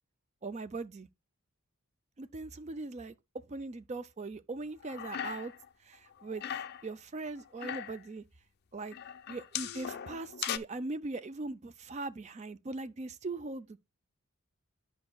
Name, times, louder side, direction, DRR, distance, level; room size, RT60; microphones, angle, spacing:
voice 1, 0.4-1.1 2.2-3.1 3.5-5.5 5.8-6.4 6.8-8.2 8.7-9.0 9.3-13.8, right 3 dB, 30° right, 0.4 m, -40 dB
sound 1, 4.8-5.7 5.9-6.9 7.4-8.0 8.9-10.6, left 9 dB, 45° left, 0.4 m, -39 dB
10.5 x 5.2 x 2.2 m
head